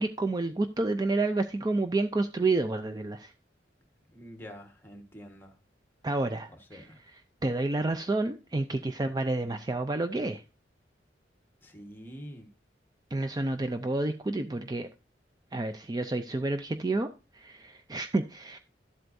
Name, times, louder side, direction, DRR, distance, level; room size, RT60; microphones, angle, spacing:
voice 1, 0.0-3.3 6.0-6.9 7.4-10.4 13.1-14.9 15.5-17.1 17.3-18.6, right 2 dB, 20° right, 8 dB, 0.4 m, -29 dB
voice 2, 4.1-5.5 6.7-7.0 11.6-12.5, equal, 10° left, 5 dB, 1.4 m, -46 dB
12.0 x 7.9 x 2.6 m, 0.30 s
head